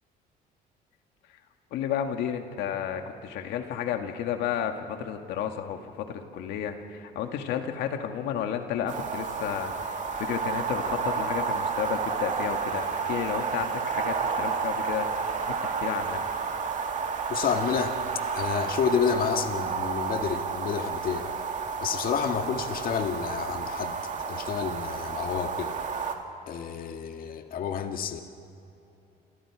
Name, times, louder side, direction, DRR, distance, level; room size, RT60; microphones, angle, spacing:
voice 1, 1.7-16.2, left 9 dB, 85° left, 5 dB, 2.1 m, -32 dB
sound 1, 8.9-26.1, right 5 dB, 45° right, 2.3 m, -31 dB
voice 2, 17.3-18.0 18.3-21.3 21.8-24.0 24.3-25.8 26.5-28.2, left 7 dB, 60° left, 5 dB, 1.7 m, -29 dB
28.5 x 27.0 x 4.9 m, 2.8 s
cardioid pair, 110°, 17 cm